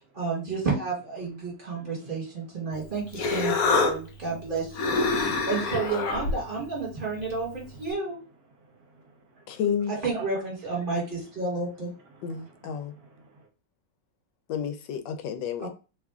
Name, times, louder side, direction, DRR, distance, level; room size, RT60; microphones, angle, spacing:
voice 1, 0.0-8.2 9.9-11.9 15.6-15.7, right 3 dB, 30° right, 1.6 m, -31 dB
voice 2, 1.7-2.2 7.7-7.8 8.6-9.6 9.9-10.2 12.1-13.5, right 4 dB, 65° right, 1.2 m, -48 dB
Human voice, 2.7-7.9, left 3 dB, 65° left, 1.0 m, -28 dB
voice 3, 9.5-9.9 12.2-12.9 14.5-15.7, left 8 dB, 85° left, 1.2 m, -30 dB
3.0 x 2.5 x 3.5 m
omnidirectional pair, 1.9 m